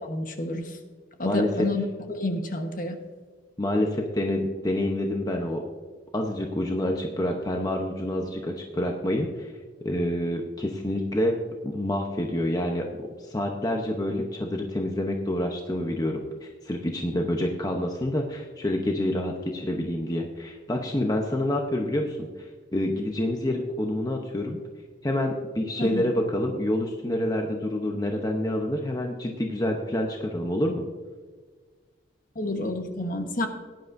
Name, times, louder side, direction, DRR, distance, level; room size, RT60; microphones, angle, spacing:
voice 1, 0.0-0.8 1.2-3.0 25.8-26.1 32.3-33.5, left 1 dB, 45° left, 5 dB, 1.2 m, -29 dB
voice 2, 3.6-5.6 6.1-9.5 9.8-11.4 11.6-24.6 25.0-30.8, left 1 dB, 20° left, 2 dB, 0.8 m, -27 dB
17.5 x 10.5 x 2.6 m, 1.5 s
head